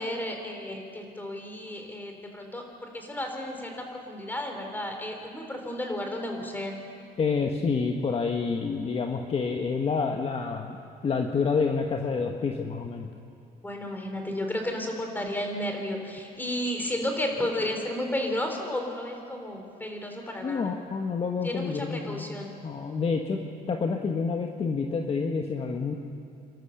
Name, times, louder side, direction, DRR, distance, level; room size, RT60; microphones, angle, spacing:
voice 1, 0.0-6.8 13.6-20.7 21.4-22.5, left 1 dB, 10° left, 3 dB, 3.7 m, -33 dB
voice 2, 7.2-10.8 11.0-13.1 20.4-22.3 22.6-23.4 23.7-25.9, left 5 dB, 35° left, 3 dB, 1.3 m, -28 dB
29.5 x 13.5 x 6.8 m, 2.5 s
cardioid pair, 110°, 17 cm